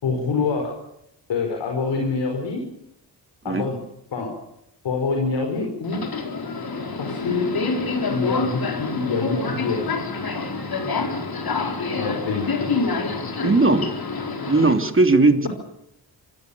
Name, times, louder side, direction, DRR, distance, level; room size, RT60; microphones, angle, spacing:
voice 1, 0.0-0.8 1.3-2.6 3.4-3.8 4.1-4.3 4.8-6.0 7.0-7.5 8.1-9.9 11.9-12.5, left 4 dB, 75° left, 3 dB, 4.9 m, -25 dB
Subway metro underground, 5.8-14.7, left 4 dB, 55° left, 4.5 m, -27 dB
voice 2, 13.4-13.9 14.5-15.5, right 3 dB, 30° right, 7 dB, 3.2 m, -17 dB
25.5 x 17.0 x 7.1 m, 0.81 s
supercardioid pair, 50°, 43 cm